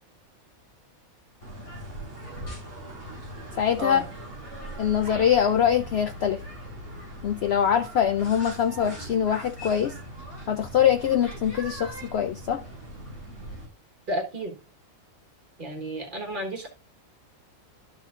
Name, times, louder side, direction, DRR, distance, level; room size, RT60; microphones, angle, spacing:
sound 1, 1.4-13.6, right 1 dB, 85° left, 4.7 m, -40 dB
voice 1, 3.6-4.0 4.8-6.4 7.2-10.0 10.5-12.6, left 9 dB, 65° left, 0.7 m, -23 dB
voice 2, 14.1-14.6 15.6-16.7, equal, 35° right, 1.6 m, -31 dB
12.5 x 6.0 x 2.5 m
omnidirectional pair, 1.5 m